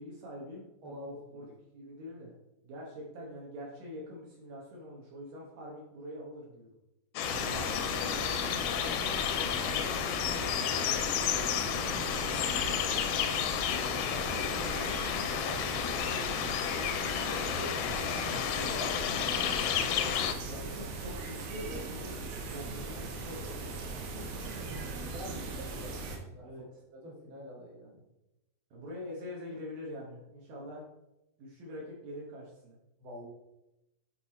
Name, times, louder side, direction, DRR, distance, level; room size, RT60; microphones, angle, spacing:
voice 1, 0.0-1.5 1.7-2.3 2.6-6.7 17.3-17.8 18.3-18.7 20.4-24.0 24.3-24.7 26.4-26.6 28.7-30.8 31.4-32.8, equal, 70° right, -4 dB, 2.5 m, -44 dB
voice 2, 0.8-1.5 7.2-8.6 11.6-12.8 13.6-16.5 18.1-19.7 23.9-24.4 24.7-26.5 27.0-28.0 33.0-33.3, equal, 40° right, -4 dB, 2.0 m, -47 dB
sound 1, 7.2-20.3, left 9 dB, 80° left, 2.2 m, -31 dB
sound 2, 7.2-26.2, right 3 dB, 85° right, 2.9 m, -39 dB
8.5 x 3.4 x 4.2 m, 0.93 s
omnidirectional pair, 4.4 m